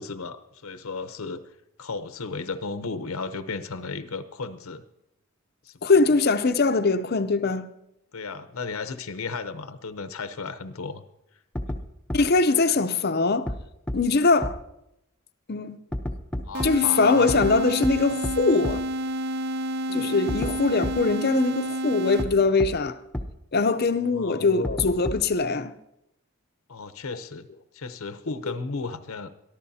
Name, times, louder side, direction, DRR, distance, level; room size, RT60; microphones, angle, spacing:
voice 1, 0.0-1.4 1.8-4.8 5.6-6.1 8.1-11.0 11.7-11.8 12.7-12.8 16.4-17.4 19.9-20.2 24.0-24.5 26.7-27.5 27.7-29.3, left 4 dB, 85° left, 0.8 m, -35 dB
voice 2, 5.8-7.7 12.1-13.5 13.9-14.6 15.5-15.8 16.6-18.8 19.9-23.0 23.5-25.7, left 3 dB, 45° left, 0.6 m, -22 dB
sound 1, 11.6-11.8 12.1-12.2 13.5-13.6 13.9-14.0 14.4-14.5 15.9-16.7 17.3-17.5 17.8-17.9 18.2-18.3 18.6-18.7 20.3-20.5 20.8-20.9 22.2-22.3 22.6-22.7 23.1-23.2 24.6-25.3, left 1 dB, 5° left, 0.7 m, -29 dB
sound 2, 16.5-22.6, equal, 50° right, 0.5 m, -30 dB
22.5 x 14.0 x 2.8 m
head